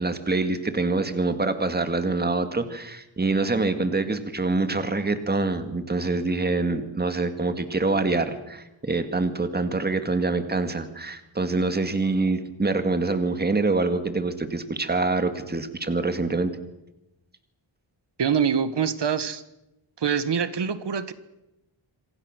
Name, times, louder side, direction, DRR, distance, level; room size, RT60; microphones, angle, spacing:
voice 1, 0.0-16.5, right 3 dB, 20° right, 9 dB, 1.9 m, -25 dB
voice 2, 18.2-19.4 20.0-21.1, right 7 dB, 60° right, 13 dB, 1.6 m, -24 dB
27.5 x 24.0 x 6.5 m, 0.92 s
wide cardioid pair, 165°, 46 cm